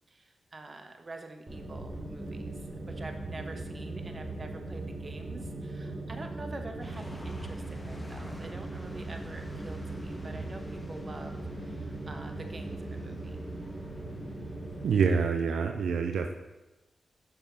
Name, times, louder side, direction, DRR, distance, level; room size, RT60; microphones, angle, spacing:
voice 1, 0.1-13.4, right 2 dB, 40° right, 5 dB, 0.9 m, -46 dB
sound 1, 1.5-14.9, right 2 dB, 20° right, 1.9 m, -39 dB
sound 2, 6.8-15.2, left 1 dB, 25° left, 1.0 m, -50 dB
voice 2, 14.8-16.3, right 5 dB, 80° right, 5 dB, 0.4 m, -26 dB
6.4 x 3.5 x 5.9 m, 1.1 s
supercardioid pair, 45°, 0 cm